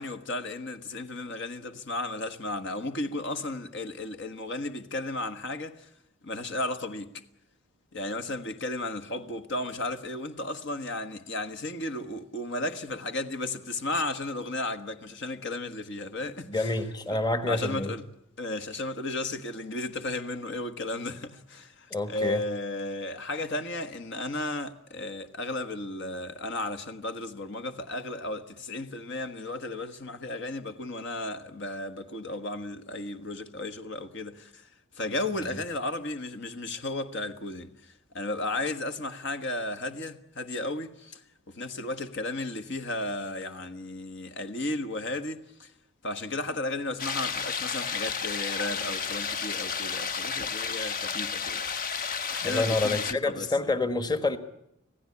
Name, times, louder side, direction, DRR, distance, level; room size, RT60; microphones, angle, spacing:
voice 1, 0.0-5.9 6.2-7.1 7.9-16.8 17.1-18.0 18.4-34.7 34.9-41.2 41.5-45.7 46.0-52.0 52.3-53.5, left 2 dB, 55° left, 1.5 m, -34 dB
voice 2, 16.5-17.9 21.9-22.4 52.4-54.4, left 2 dB, 20° left, 1.5 m, -28 dB
sound 1, 47.0-53.1, left 6 dB, 40° left, 1.0 m, -32 dB
26.5 x 17.0 x 9.7 m
head